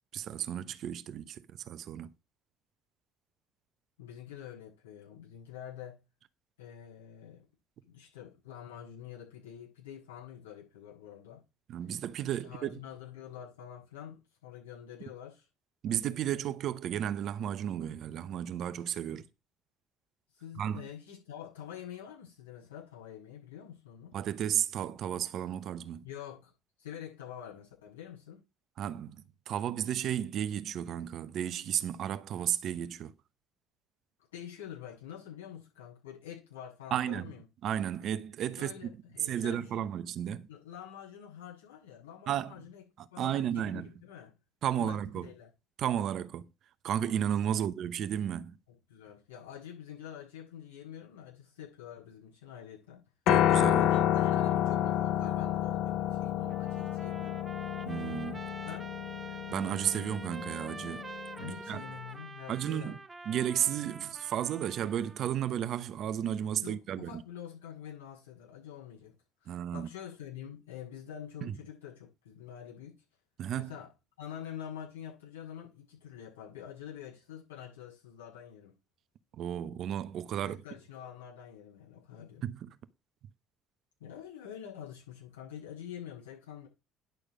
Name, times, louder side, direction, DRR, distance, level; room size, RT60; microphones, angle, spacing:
voice 1, 0.1-2.1 11.7-12.8 15.8-19.2 20.6-20.9 24.1-26.0 28.8-33.1 36.9-37.3 37.6-38.7 39.2-40.4 42.3-42.5 43.0-43.9 44.6-45.3 45.8-46.5 46.8-48.6 53.3-53.9 57.9-58.5 59.5-61.0 61.4-61.8 62.5-63.0 63.2-67.2 69.5-69.9 71.4-71.6 73.4-73.7 79.4-80.6 82.4-82.8, right 10 dB, 55° right, 0.9 m, -33 dB
voice 2, 4.0-6.0 6.6-7.4 7.8-11.4 12.3-15.5 19.1-19.2 20.3-24.1 26.0-26.5 26.8-28.4 34.3-37.4 38.6-39.8 40.5-42.8 43.1-44.3 44.8-45.0 45.2-45.5 47.6-47.7 48.9-53.0 53.7-57.4 58.7-58.9 61.4-63.0 66.6-69.1 69.4-73.0 73.6-73.9 74.2-78.7 80.4-82.4 84.0-86.7, left 9 dB, 85° left, 8.0 m, -46 dB
Piano, 53.3-61.5, left 11 dB, 65° left, 0.8 m, -30 dB
Trumpet, 56.5-65.3, right 3 dB, 20° right, 1.3 m, -47 dB
10.5 x 6.5 x 5.0 m
hypercardioid pair, 60°, 0 cm